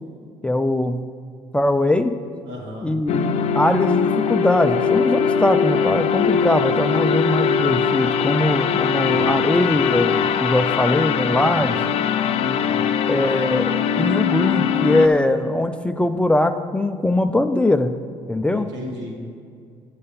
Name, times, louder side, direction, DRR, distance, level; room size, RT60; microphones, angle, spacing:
voice 1, 0.4-1.0 1.5-2.1 2.8-3.3 3.5-11.8 13.1-17.9 18.3-18.7, left 1 dB, 10° left, 8 dB, 0.4 m, -21 dB
voice 2, 2.4-3.0 8.8-9.3 11.4-11.9 12.4-12.9 18.5-19.4, equal, 80° right, -2 dB, 2.2 m, -35 dB
sound 1, 3.1-15.1, left 7 dB, 60° left, 0.5 m, -21 dB
8.4 x 6.6 x 5.5 m, 2.4 s
supercardioid pair, 95°, 12 cm